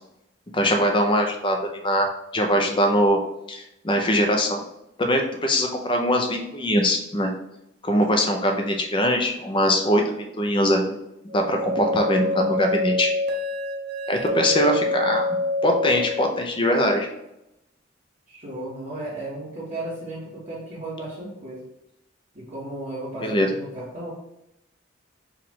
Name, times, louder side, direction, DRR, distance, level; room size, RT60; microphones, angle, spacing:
voice 1, 0.5-1.6 1.8-2.1 2.3-3.2 3.5-4.6 5.0-7.3 7.8-11.0 11.2-13.1 14.1-15.3 15.6-17.1 23.2-23.5, equal, 25° left, 3 dB, 0.6 m, -22 dB
sound 1, 11.3-16.2, left 2 dB, 55° right, 0.7 m, -26 dB
voice 2, 18.3-21.7 22.3-24.1, right 1 dB, 40° right, -11 dB, 1.4 m, -34 dB
4.7 x 2.4 x 3.6 m, 0.85 s
head